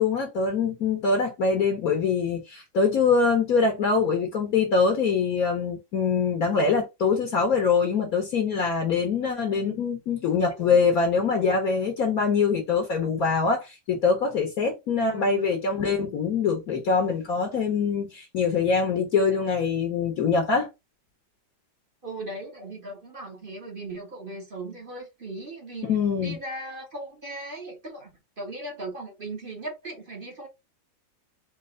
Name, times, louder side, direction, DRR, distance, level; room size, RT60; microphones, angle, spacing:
voice 1, 0.0-20.7 25.9-26.4, left 5 dB, 55° left, 1.3 m, -24 dB
voice 2, 9.2-9.8 10.7-10.8 11.3-11.4 15.0-15.7 22.0-25.9 26.2-28.1 28.4-30.5, right 2 dB, 30° right, 1.4 m, -38 dB
4.3 x 2.8 x 3.8 m
omnidirectional pair, 2.0 m